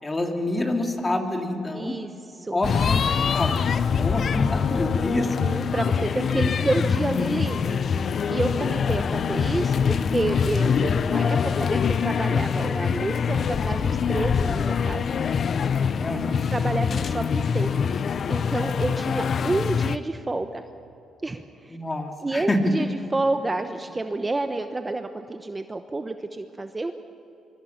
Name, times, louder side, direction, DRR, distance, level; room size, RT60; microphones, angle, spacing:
voice 1, 0.0-1.9 2.5-3.6 3.9-5.3 16.0-16.5 21.7-22.6, left 2 dB, 20° left, 3 dB, 2.9 m, -27 dB
voice 2, 1.7-2.1 2.4-2.6 5.2-15.0 15.4-15.5 16.5-17.9 18.3-20.6 21.2-21.8 22.2-26.9, right 2 dB, 20° right, 7 dB, 1.0 m, -29 dB
sound 1, 2.6-20.0, left 6 dB, 50° left, 0.7 m, -24 dB
25.0 x 23.5 x 5.8 m, 2.9 s
cardioid pair, 90°, 0 cm